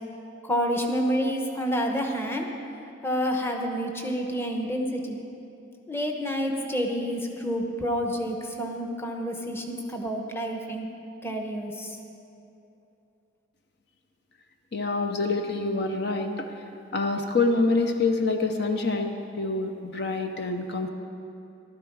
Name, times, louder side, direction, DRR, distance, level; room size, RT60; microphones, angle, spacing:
voice 1, 0.4-2.5 3.0-5.2 5.9-10.9 11.2-12.0, equal, 15° left, 2 dB, 1.0 m, -29 dB
voice 2, 14.7-16.6 16.9-20.9, left 3 dB, 60° left, 5 dB, 0.8 m, -26 dB
14.5 x 12.0 x 4.8 m, 2.7 s
head